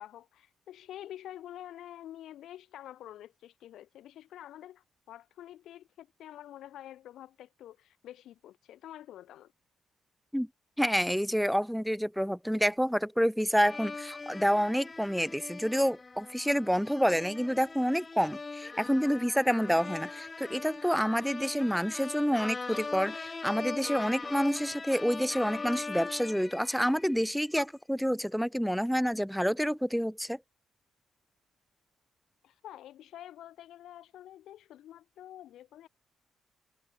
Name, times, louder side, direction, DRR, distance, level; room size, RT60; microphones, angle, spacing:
voice 1, 0.0-9.5 32.4-35.9, left 12 dB, 85° left, 2.0 m, -48 dB
voice 2, 10.8-30.4, equal, ahead, 0.5 m, -28 dB
sound 1, 13.6-27.3, left 4 dB, 25° left, 3.4 m, -41 dB
cardioid pair, 115°, 0 cm